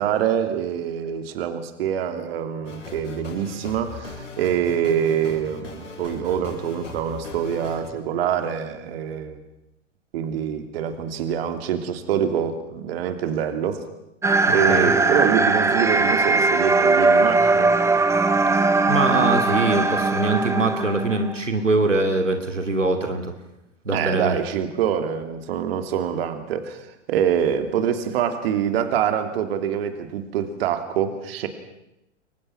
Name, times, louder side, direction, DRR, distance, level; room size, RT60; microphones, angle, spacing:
voice 1, 0.0-9.4 10.1-13.9 14.5-17.7 23.9-26.8 27.1-31.5, right 9 dB, 55° right, 8 dB, 3.1 m, -25 dB
sound 1, 2.6-7.9, left 4 dB, 80° left, 7.3 m, -38 dB
sound 2, 14.2-21.3, right 3 dB, 10° right, 1.3 m, -20 dB
voice 2, 18.9-23.3 23.8-24.4, right 2 dB, 85° right, 5 dB, 2.8 m, -22 dB
29.5 x 23.5 x 6.1 m, 0.86 s
figure-of-eight pair, 100°, 37 cm